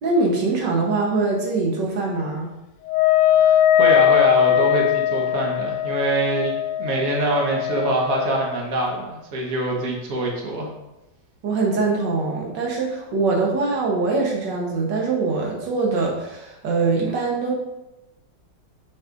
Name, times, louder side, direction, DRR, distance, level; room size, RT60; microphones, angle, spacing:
voice 1, 0.0-2.5 11.4-17.5, right 3 dB, 80° right, -1 dB, 1.7 m, -23 dB
Wind instrument woodwind instrument, 2.9-8.5, left 11 dB, 80° left, 1.2 m, -20 dB
voice 2, 3.4-10.7, right 2 dB, 55° right, -1 dB, 1.6 m, -24 dB
7.2 x 6.1 x 2.5 m, 0.96 s
omnidirectional pair, 1.9 m